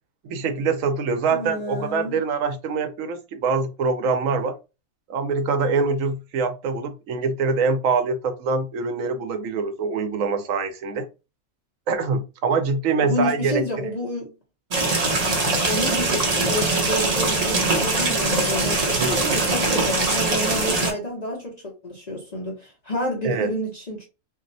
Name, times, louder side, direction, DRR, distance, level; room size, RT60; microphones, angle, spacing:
voice 1, 0.2-4.5 5.1-11.0 11.9-13.6 18.9-19.2 23.2-23.5, right 4 dB, 75° right, 1.0 m, -24 dB
voice 2, 1.3-2.2 13.0-14.3 15.6-24.0, left 1 dB, 40° left, 0.7 m, -29 dB
sound 1, 14.7-20.9, right 2 dB, 45° right, 0.5 m, -22 dB
2.6 x 2.1 x 3.9 m
omnidirectional pair, 1.5 m